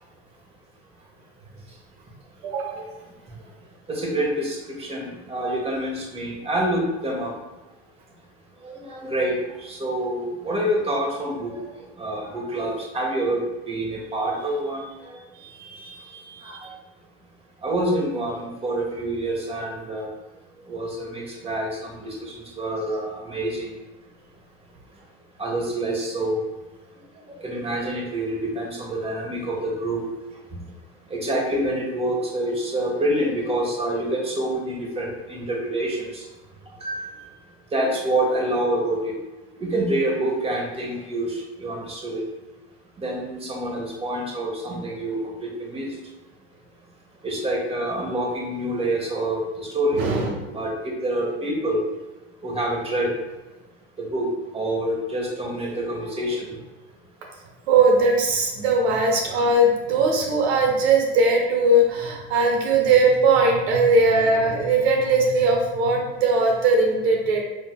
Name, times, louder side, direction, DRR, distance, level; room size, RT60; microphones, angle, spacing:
voice 1, 2.4-2.9 15.4-16.7 49.9-50.6 57.7-67.4, right 2 dB, 70° right, 0 dB, 1.0 m, -20 dB
voice 2, 3.9-7.3 8.6-11.6 12.0-13.4 13.7-15.2 16.4-16.7 17.6-20.1 20.7-23.7 25.4-26.4 27.4-30.0 31.1-36.2 36.8-37.2 37.7-39.1 39.6-42.2 43.0-45.9 47.2-50.0 50.5-51.8 52.4-53.1 54.0-54.3 54.5-56.5 64.4-64.6, right 1 dB, 20° right, -1 dB, 1.3 m, -27 dB
6.3 x 3.5 x 2.2 m, 1.1 s
hypercardioid pair, 90°, 33 cm